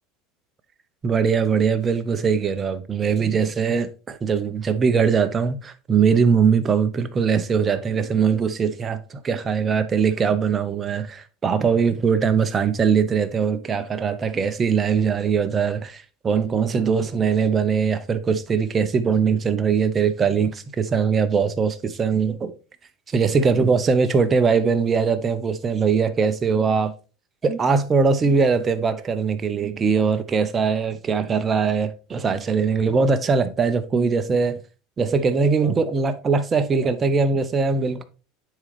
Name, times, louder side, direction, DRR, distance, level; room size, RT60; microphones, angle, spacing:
voice 1, 1.0-22.5 23.1-26.9 27.4-34.6 35.0-38.0, right 5 dB, 25° right, 0.8 m, -21 dB
9.4 x 3.8 x 3.3 m
supercardioid pair, 120°, 0 cm